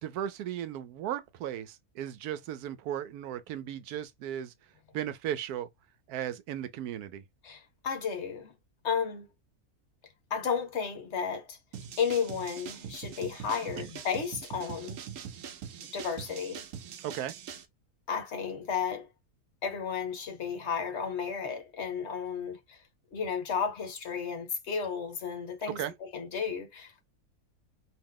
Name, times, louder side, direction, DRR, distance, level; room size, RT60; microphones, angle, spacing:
voice 1, 0.0-4.5 4.9-5.7 6.1-7.2 13.8-13.9 17.0-17.3 25.8-25.9, right 10 dB, 85° right, 1.1 m, -36 dB
voice 2, 7.4-8.5 8.8-9.3 10.3-11.6 12.0-15.0 15.9-16.6 18.1-19.1 19.6-22.8 23.1-27.0, left 6 dB, 55° left, 1.1 m, -33 dB
sound 1, 11.7-17.7, right 8 dB, 65° right, 0.9 m, -43 dB
3.0 x 2.7 x 3.6 m
omnidirectional pair, 1.6 m